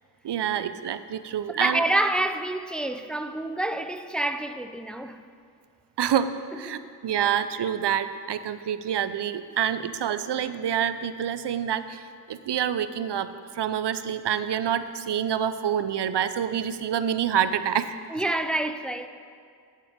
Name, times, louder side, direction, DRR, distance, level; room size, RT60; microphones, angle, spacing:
voice 1, 0.2-1.8 6.0-13.3 13.5-18.0, right 9 dB, 75° right, 0.5 m, -27 dB
voice 2, 1.5-5.2 6.7-6.9 18.1-19.1, right 1 dB, ahead, 0.4 m, -27 dB
9.0 x 7.5 x 5.0 m
cardioid pair, 45°, 41 cm